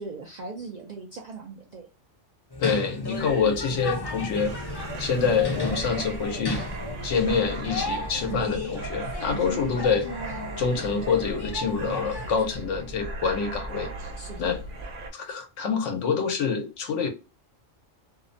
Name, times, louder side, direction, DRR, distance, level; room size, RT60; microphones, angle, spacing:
voice 1, 0.0-1.9 5.2-5.5 7.2-7.5 8.3-8.5 9.3-9.5 14.2-14.6, right 5 dB, 70° right, 0.4 m, -39 dB
sound 1, 2.5-12.4, left 2 dB, 30° left, 0.4 m, -35 dB
voice 2, 2.6-4.5 5.0-6.6 7.0-10.1 10.6-13.9 14.4-14.6 15.1-17.1, left 5 dB, 80° left, 1.0 m, -26 dB
sound 2, 3.2-14.8, right 4 dB, 55° left, 0.9 m, -42 dB
sound 3, 4.3-15.1, right 2 dB, 90° right, 1.0 m, -39 dB
2.6 x 2.1 x 2.5 m
omnidirectional pair, 1.3 m